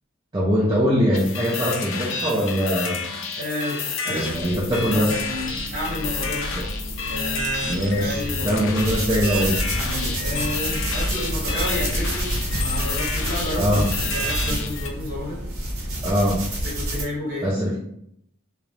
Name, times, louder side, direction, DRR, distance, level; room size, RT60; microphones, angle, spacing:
voice 1, 0.3-3.0 4.1-5.2 7.6-9.6 13.6-13.9 16.0-16.4 17.4-17.8, equal, 20° right, -6 dB, 0.4 m, -22 dB
sound 1, 1.1-14.9, left 4 dB, 60° left, 0.4 m, -30 dB
voice 2, 3.3-6.5 7.0-8.8 9.7-15.4 16.6-17.8, left 1 dB, 40° right, -6 dB, 1.2 m, -31 dB
sound 2, 4.3-16.1, equal, 5° left, 1.0 m, -34 dB
sound 3, 8.8-17.0, right 1 dB, 75° right, 0.7 m, -28 dB
2.4 x 2.0 x 2.9 m, 0.71 s
head